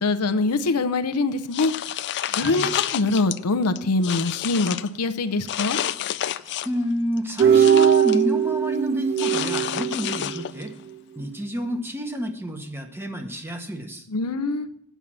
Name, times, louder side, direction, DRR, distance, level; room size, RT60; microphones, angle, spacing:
voice 1, 0.0-1.7 2.3-5.8 14.1-14.7, left 3 dB, 90° left, 10 dB, 0.7 m, -23 dB
sound 1, 1.5-3.4 3.8-4.9 5.5-6.8 7.2-8.2 9.2-10.7, left 11 dB, 50° left, 0.4 m, -29 dB
voice 2, 2.4-2.7 6.4-10.7 11.2-14.1, equal, 10° right, 4 dB, 1.0 m, -30 dB
sound 2, 7.4-10.6, right 8 dB, 45° right, 0.3 m, -20 dB
8.2 x 5.6 x 7.3 m, 0.69 s
head